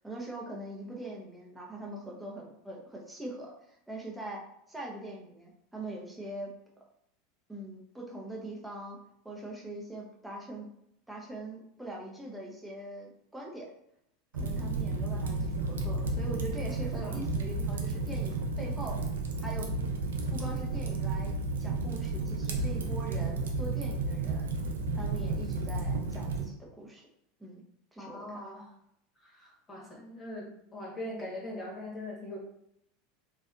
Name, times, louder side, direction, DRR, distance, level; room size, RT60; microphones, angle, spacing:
voice 1, 0.0-4.4 4.7-6.5 7.5-9.0 9.2-10.7 11.1-13.7 14.3-19.0 19.4-19.7 20.3-24.5 24.9-27.0 27.4-27.6 27.9-28.6, right 1 dB, 5° right, -3 dB, 0.9 m, -42 dB
Fire, 14.3-26.5, right 3 dB, 75° right, 0.5 m, -32 dB
voice 2, 17.0-17.4 28.0-28.7 29.2-32.4, left 1 dB, 25° left, -3 dB, 1.3 m, -41 dB
3.1 x 2.5 x 2.5 m, 0.77 s
figure-of-eight pair, 80°, 0 cm